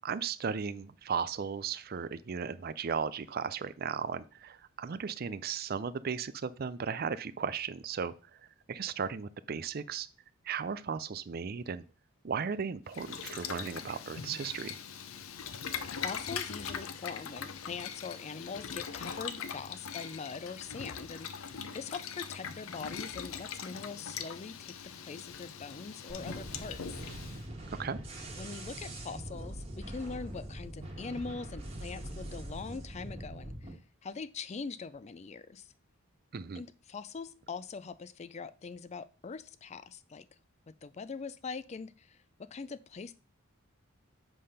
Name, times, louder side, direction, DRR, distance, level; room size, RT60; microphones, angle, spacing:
voice 1, 0.0-8.1 8.7-10.1 10.4-11.8 12.2-14.8 27.8-28.0 36.3-36.6, right 6 dB, 45° right, 14 dB, 0.4 m, -36 dB
Boiling, 12.9-27.4, left 7 dB, 80° left, 0.6 m, -41 dB
voice 2, 15.9-26.8 28.4-33.7 34.0-35.7 36.6-40.3 40.7-43.1, left 4 dB, 30° left, 14 dB, 0.4 m, -42 dB
sound 1, 26.1-33.7, right 1 dB, 25° right, 1.7 m, -43 dB
7.6 x 3.4 x 5.5 m, 0.37 s
head